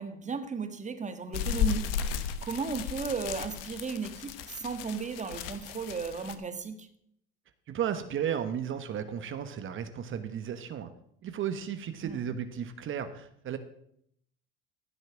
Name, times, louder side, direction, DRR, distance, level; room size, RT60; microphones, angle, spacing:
voice 1, 0.0-1.9 2.4-6.9 12.0-12.2, right 5 dB, 25° right, 1.7 m, -35 dB
sound 1, 1.3-6.3, left 8 dB, 75° left, 1.1 m, -34 dB
voice 2, 7.7-10.9 11.2-13.6, right 9 dB, 45° right, 1.2 m, -34 dB
15.0 x 6.4 x 6.3 m
hypercardioid pair, 75°, 29 cm